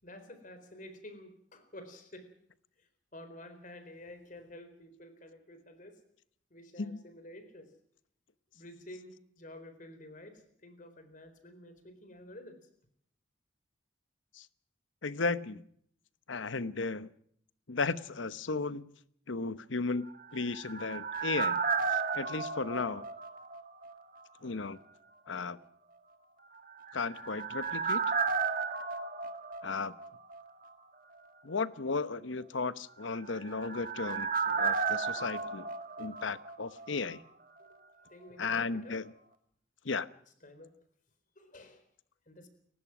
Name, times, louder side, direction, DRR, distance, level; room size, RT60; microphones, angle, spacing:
voice 1, 0.0-2.3 2.8-6.0 6.5-7.7 8.5-12.6 37.6-37.8 38.1-39.0 40.4-40.7 41.4-41.8 42.3-42.5, left 1 dB, 40° left, 9 dB, 4.2 m, -50 dB
voice 2, 15.0-15.6 16.3-17.1 17.7-18.9 19.3-20.1 20.3-21.6 21.9-23.1 24.4-24.8 25.3-25.6 26.9-28.0 29.6-29.9 31.4-35.7 36.0-37.2 38.4-39.1 39.8-40.1, left 4 dB, 75° left, 15 dB, 0.9 m, -35 dB
sound 1, 20.1-23.9 24.2-24.3 26.7-30.4 30.7-30.8 33.0-36.9 37.1-37.2, right 5 dB, 45° right, 1.7 m, -34 dB
29.5 x 16.0 x 6.1 m, 0.66 s
head